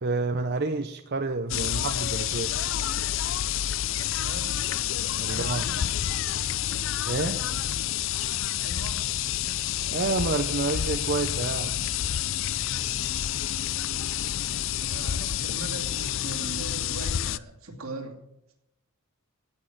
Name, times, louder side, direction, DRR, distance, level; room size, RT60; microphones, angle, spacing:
voice 1, 0.0-2.6 5.2-5.6 7.1-7.4 9.9-11.8, right 3 dB, 50° right, 7 dB, 0.7 m, -29 dB
sound 1, 1.5-17.4, left 11 dB, 60° left, 0.4 m, -29 dB
voice 2, 4.1-4.7 5.3-5.9 8.6-9.2 14.8-18.2, right 3 dB, 80° right, 2 dB, 2.9 m, -40 dB
16.5 x 6.4 x 9.1 m, 0.85 s
head